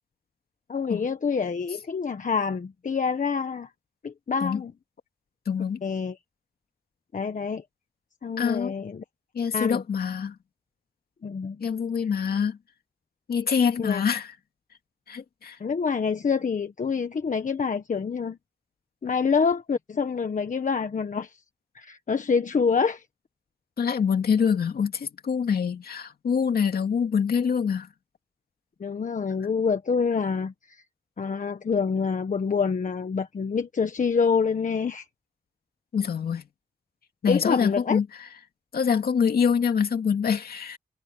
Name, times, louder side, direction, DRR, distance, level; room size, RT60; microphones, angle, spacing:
voice 1, 0.7-3.7 4.0-4.7 5.8-6.2 7.1-7.6 8.2-9.0 9.5-9.8 11.2-11.7 13.8-14.0 15.6-18.4 19.0-21.4 21.7-23.0 28.8-30.8 31.2-35.1 37.3-38.0, left 5 dB, 55° left, 1.3 m, -26 dB
voice 2, 5.5-5.9 8.4-8.7 9.3-10.4 11.6-12.6 13.3-14.3 15.1-15.6 23.8-27.9 35.9-36.5 37.2-38.1 38.7-40.8, left 6 dB, 90° left, 2.4 m, -25 dB
wide cardioid pair, 95°, 15 cm